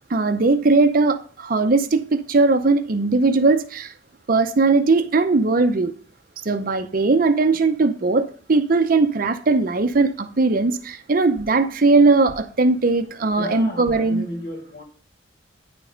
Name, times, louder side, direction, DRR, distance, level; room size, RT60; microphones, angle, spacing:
voice 1, 0.1-3.9 4.3-5.9 6.4-14.3, right 3 dB, 50° right, 0.6 m, -19 dB
voice 2, 13.4-14.8, left 1 dB, 55° left, 1.4 m, -33 dB
9.6 x 5.2 x 5.1 m
head